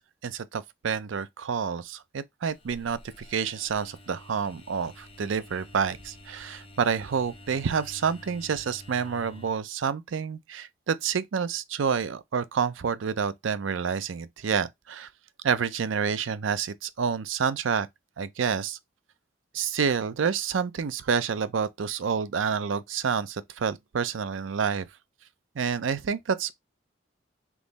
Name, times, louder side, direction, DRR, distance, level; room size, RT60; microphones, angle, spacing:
voice 1, 0.0-15.1 15.4-17.9 18.2-18.8 19.5-24.9 25.6-26.5, right 6 dB, 80° right, 0.5 m, -28 dB
sound 1, 2.5-9.5, left 1 dB, 30° left, 0.7 m, -49 dB
3.6 x 3.0 x 3.9 m
head